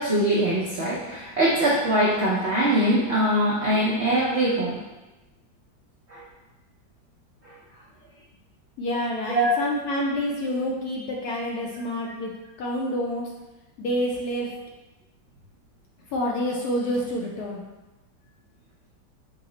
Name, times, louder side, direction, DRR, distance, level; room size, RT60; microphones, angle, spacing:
voice 1, 0.0-4.8 6.1-6.2 9.3-9.6, right 1 dB, 80° right, -6 dB, 0.6 m, -22 dB
voice 2, 8.8-12.3 12.6-13.2 13.8-14.5 16.1-17.7, equal, 70° left, -2 dB, 0.9 m, -28 dB
6.0 x 2.0 x 3.7 m, 1.1 s
omnidirectional pair, 2.0 m